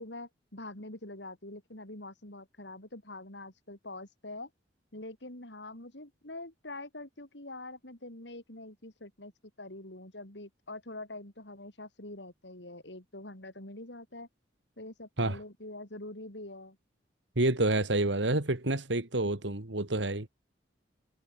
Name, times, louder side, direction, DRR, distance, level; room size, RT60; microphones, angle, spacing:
voice 1, 0.0-4.5 4.9-9.3 9.6-14.3 14.8-16.8, left 2 dB, 70° left, 5.4 m, -45 dB
voice 2, 17.4-20.3, right 2 dB, 80° right, 2.5 m, -28 dB
head